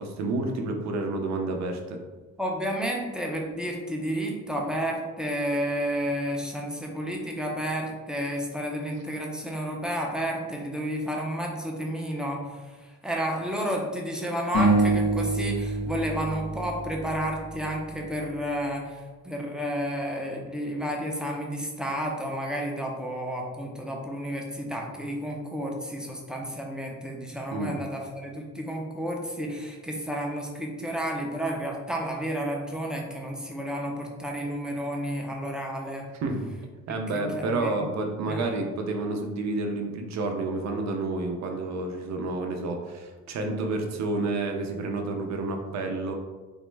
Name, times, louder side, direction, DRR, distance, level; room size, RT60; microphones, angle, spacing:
voice 1, 0.0-2.0 27.5-27.8 36.2-36.5 36.9-46.1, right 2 dB, 65° right, 3 dB, 0.6 m, -29 dB
voice 2, 2.4-36.1 37.1-37.8 38.3-38.4, equal, ahead, -1 dB, 0.5 m, -31 dB
sound 1, 14.5-17.8, right 2 dB, 65° left, 1.2 m, -26 dB
3.5 x 2.1 x 3.2 m, 1.3 s
cardioid pair, 90°, 30 cm